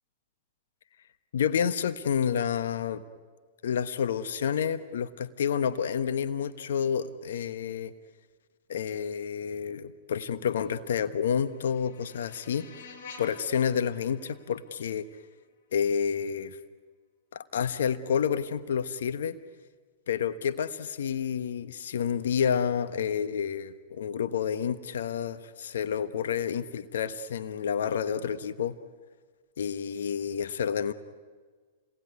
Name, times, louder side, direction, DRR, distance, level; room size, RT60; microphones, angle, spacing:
voice 1, 1.3-3.0 3.6-7.9 8.7-12.6 13.2-15.1 15.7-16.6 17.3-19.4 20.1-28.8 29.6-30.9, left 7 dB, 75° left, 12 dB, 1.1 m, -29 dB
sound 1, 10.8-15.8, left 5 dB, 60° left, 5.9 m, -51 dB
29.5 x 20.0 x 9.6 m, 1.5 s
hypercardioid pair, 125°, 0 cm